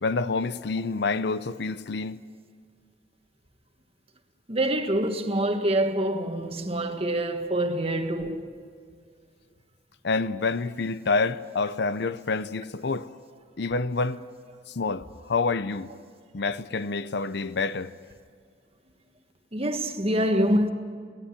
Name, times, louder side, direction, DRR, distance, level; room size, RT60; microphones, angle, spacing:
voice 1, 0.0-2.2 10.0-13.1 13.6-14.2 14.7-15.9 16.3-17.9, left 4 dB, 65° left, 0.6 m, -27 dB
voice 2, 4.5-8.5 19.5-20.7, right 1 dB, 30° right, 1.5 m, -25 dB
23.0 x 17.5 x 9.8 m
head